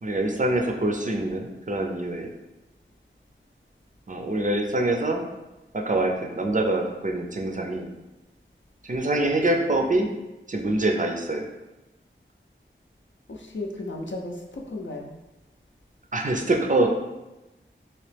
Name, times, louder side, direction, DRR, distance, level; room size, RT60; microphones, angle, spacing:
voice 1, 0.0-2.3 4.1-5.2 5.7-7.9 8.9-10.1 10.5-11.4 16.1-16.9, right 2 dB, 40° right, 2 dB, 0.4 m, -25 dB
voice 2, 13.3-15.1, left 2 dB, 65° left, 1 dB, 0.5 m, -35 dB
3.0 x 2.8 x 3.3 m, 1.0 s
wide cardioid pair, 50°, 20 cm